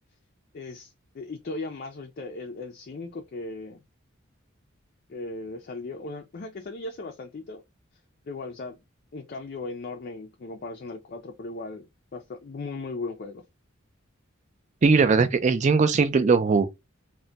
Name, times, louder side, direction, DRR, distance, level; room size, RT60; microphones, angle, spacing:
voice 1, 0.5-3.8 5.1-7.6 8.3-8.8 9.1-13.4, left 3 dB, 45° left, 0.4 m, -37 dB
voice 2, 14.8-16.7, right 4 dB, 35° right, 0.3 m, -20 dB
2.1 x 2.1 x 3.8 m
head